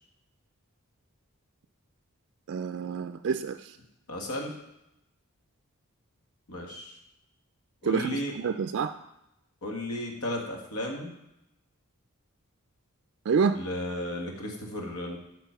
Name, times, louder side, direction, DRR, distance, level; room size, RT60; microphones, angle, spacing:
voice 1, 2.5-3.8 7.8-8.9 13.3-13.6, right 5 dB, 55° right, 8 dB, 0.3 m, -28 dB
voice 2, 4.1-4.5 6.5-6.9 7.8-8.3 9.6-11.1 13.5-15.2, left 1 dB, 90° left, 0 dB, 1.6 m, -34 dB
8.9 x 4.2 x 5.8 m, 0.86 s
head